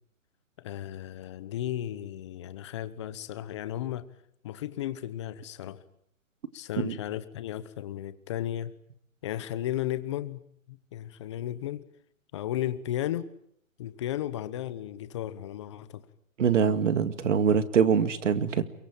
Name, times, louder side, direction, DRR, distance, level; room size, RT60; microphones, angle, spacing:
voice 1, 0.6-4.0 4.4-5.8 6.5-8.7 9.2-10.4 10.7-11.8 12.3-13.3 13.8-16.0, left 12 dB, 20° left, 14 dB, 1.0 m, -34 dB
voice 2, 16.4-18.6, right 7 dB, 60° right, 12 dB, 2.2 m, -24 dB
23.0 x 23.0 x 8.9 m, 0.68 s
hypercardioid pair, 165°, 41 cm